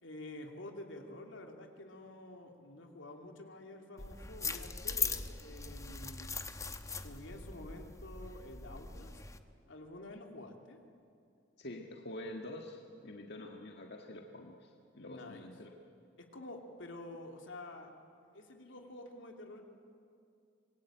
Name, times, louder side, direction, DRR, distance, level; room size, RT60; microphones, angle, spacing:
voice 1, 0.0-6.3 7.0-9.2 9.7-10.8 15.1-15.5 16.2-17.9 18.3-19.6, left 1 dB, 85° left, 3 dB, 2.8 m, -49 dB
sound 1, 4.0-9.4, left 5 dB, 15° left, 1.0 m, -40 dB
voice 2, 11.6-15.7, left 1 dB, 60° left, 2 dB, 1.7 m, -46 dB
25.5 x 21.5 x 9.0 m, 2.5 s
head